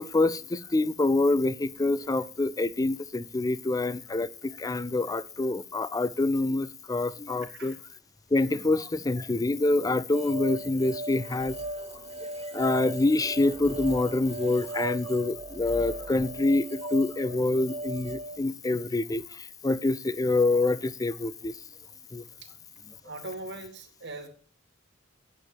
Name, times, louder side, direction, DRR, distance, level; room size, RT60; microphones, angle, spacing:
voice 1, 0.0-7.8 8.3-11.6 12.5-21.5 22.1-22.2, left 2 dB, 20° left, 0.4 m, -26 dB
voice 2, 7.4-7.8 23.0-24.3, right 2 dB, 60° right, 2.3 m, -40 dB
sound 1, 10.1-18.4, right 2 dB, 30° right, 0.8 m, -37 dB
8.9 x 7.1 x 7.7 m
head